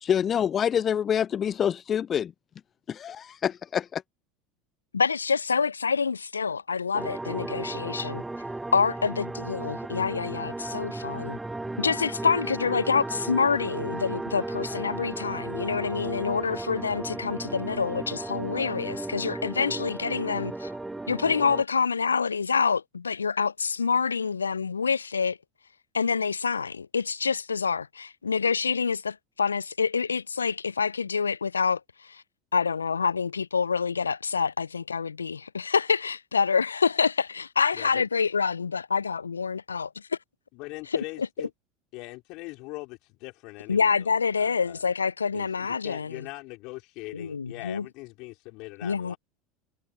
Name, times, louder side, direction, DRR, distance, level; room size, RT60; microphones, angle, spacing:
voice 1, 0.0-2.3 2.9-4.0, left 8 dB, 35° left, 0.5 m, -26 dB
voice 2, 4.9-8.2 8.7-11.4 11.8-20.7 21.1-25.4 25.9-32.2 32.5-40.0 41.2-41.3 43.7-46.2 47.1-47.9 48.8-49.1, left 5 dB, 85° left, 0.6 m, -27 dB
sound 1, 6.9-21.6, right 2 dB, 10° right, 0.8 m, -35 dB
voice 3, 40.5-41.5 41.9-44.8 45.3-49.2, left 24 dB, 55° left, 4.2 m, -41 dB
figure-of-eight pair, 75°, 0 cm